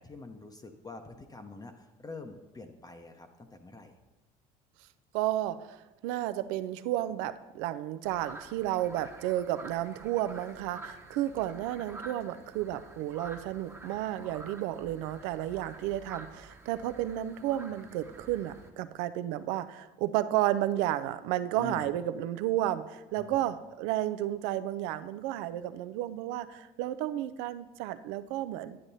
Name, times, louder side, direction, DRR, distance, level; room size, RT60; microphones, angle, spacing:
voice 1, 0.0-4.0 21.5-21.9 23.2-23.4, left 3 dB, 20° left, 5 dB, 0.8 m, -45 dB
voice 2, 5.1-28.8, right 13 dB, 70° right, 13 dB, 0.5 m, -32 dB
sound 1, 8.0-18.7, right 2 dB, 15° right, 1.0 m, -49 dB
9.8 x 8.7 x 2.7 m, 1.1 s
hypercardioid pair, 65°, 19 cm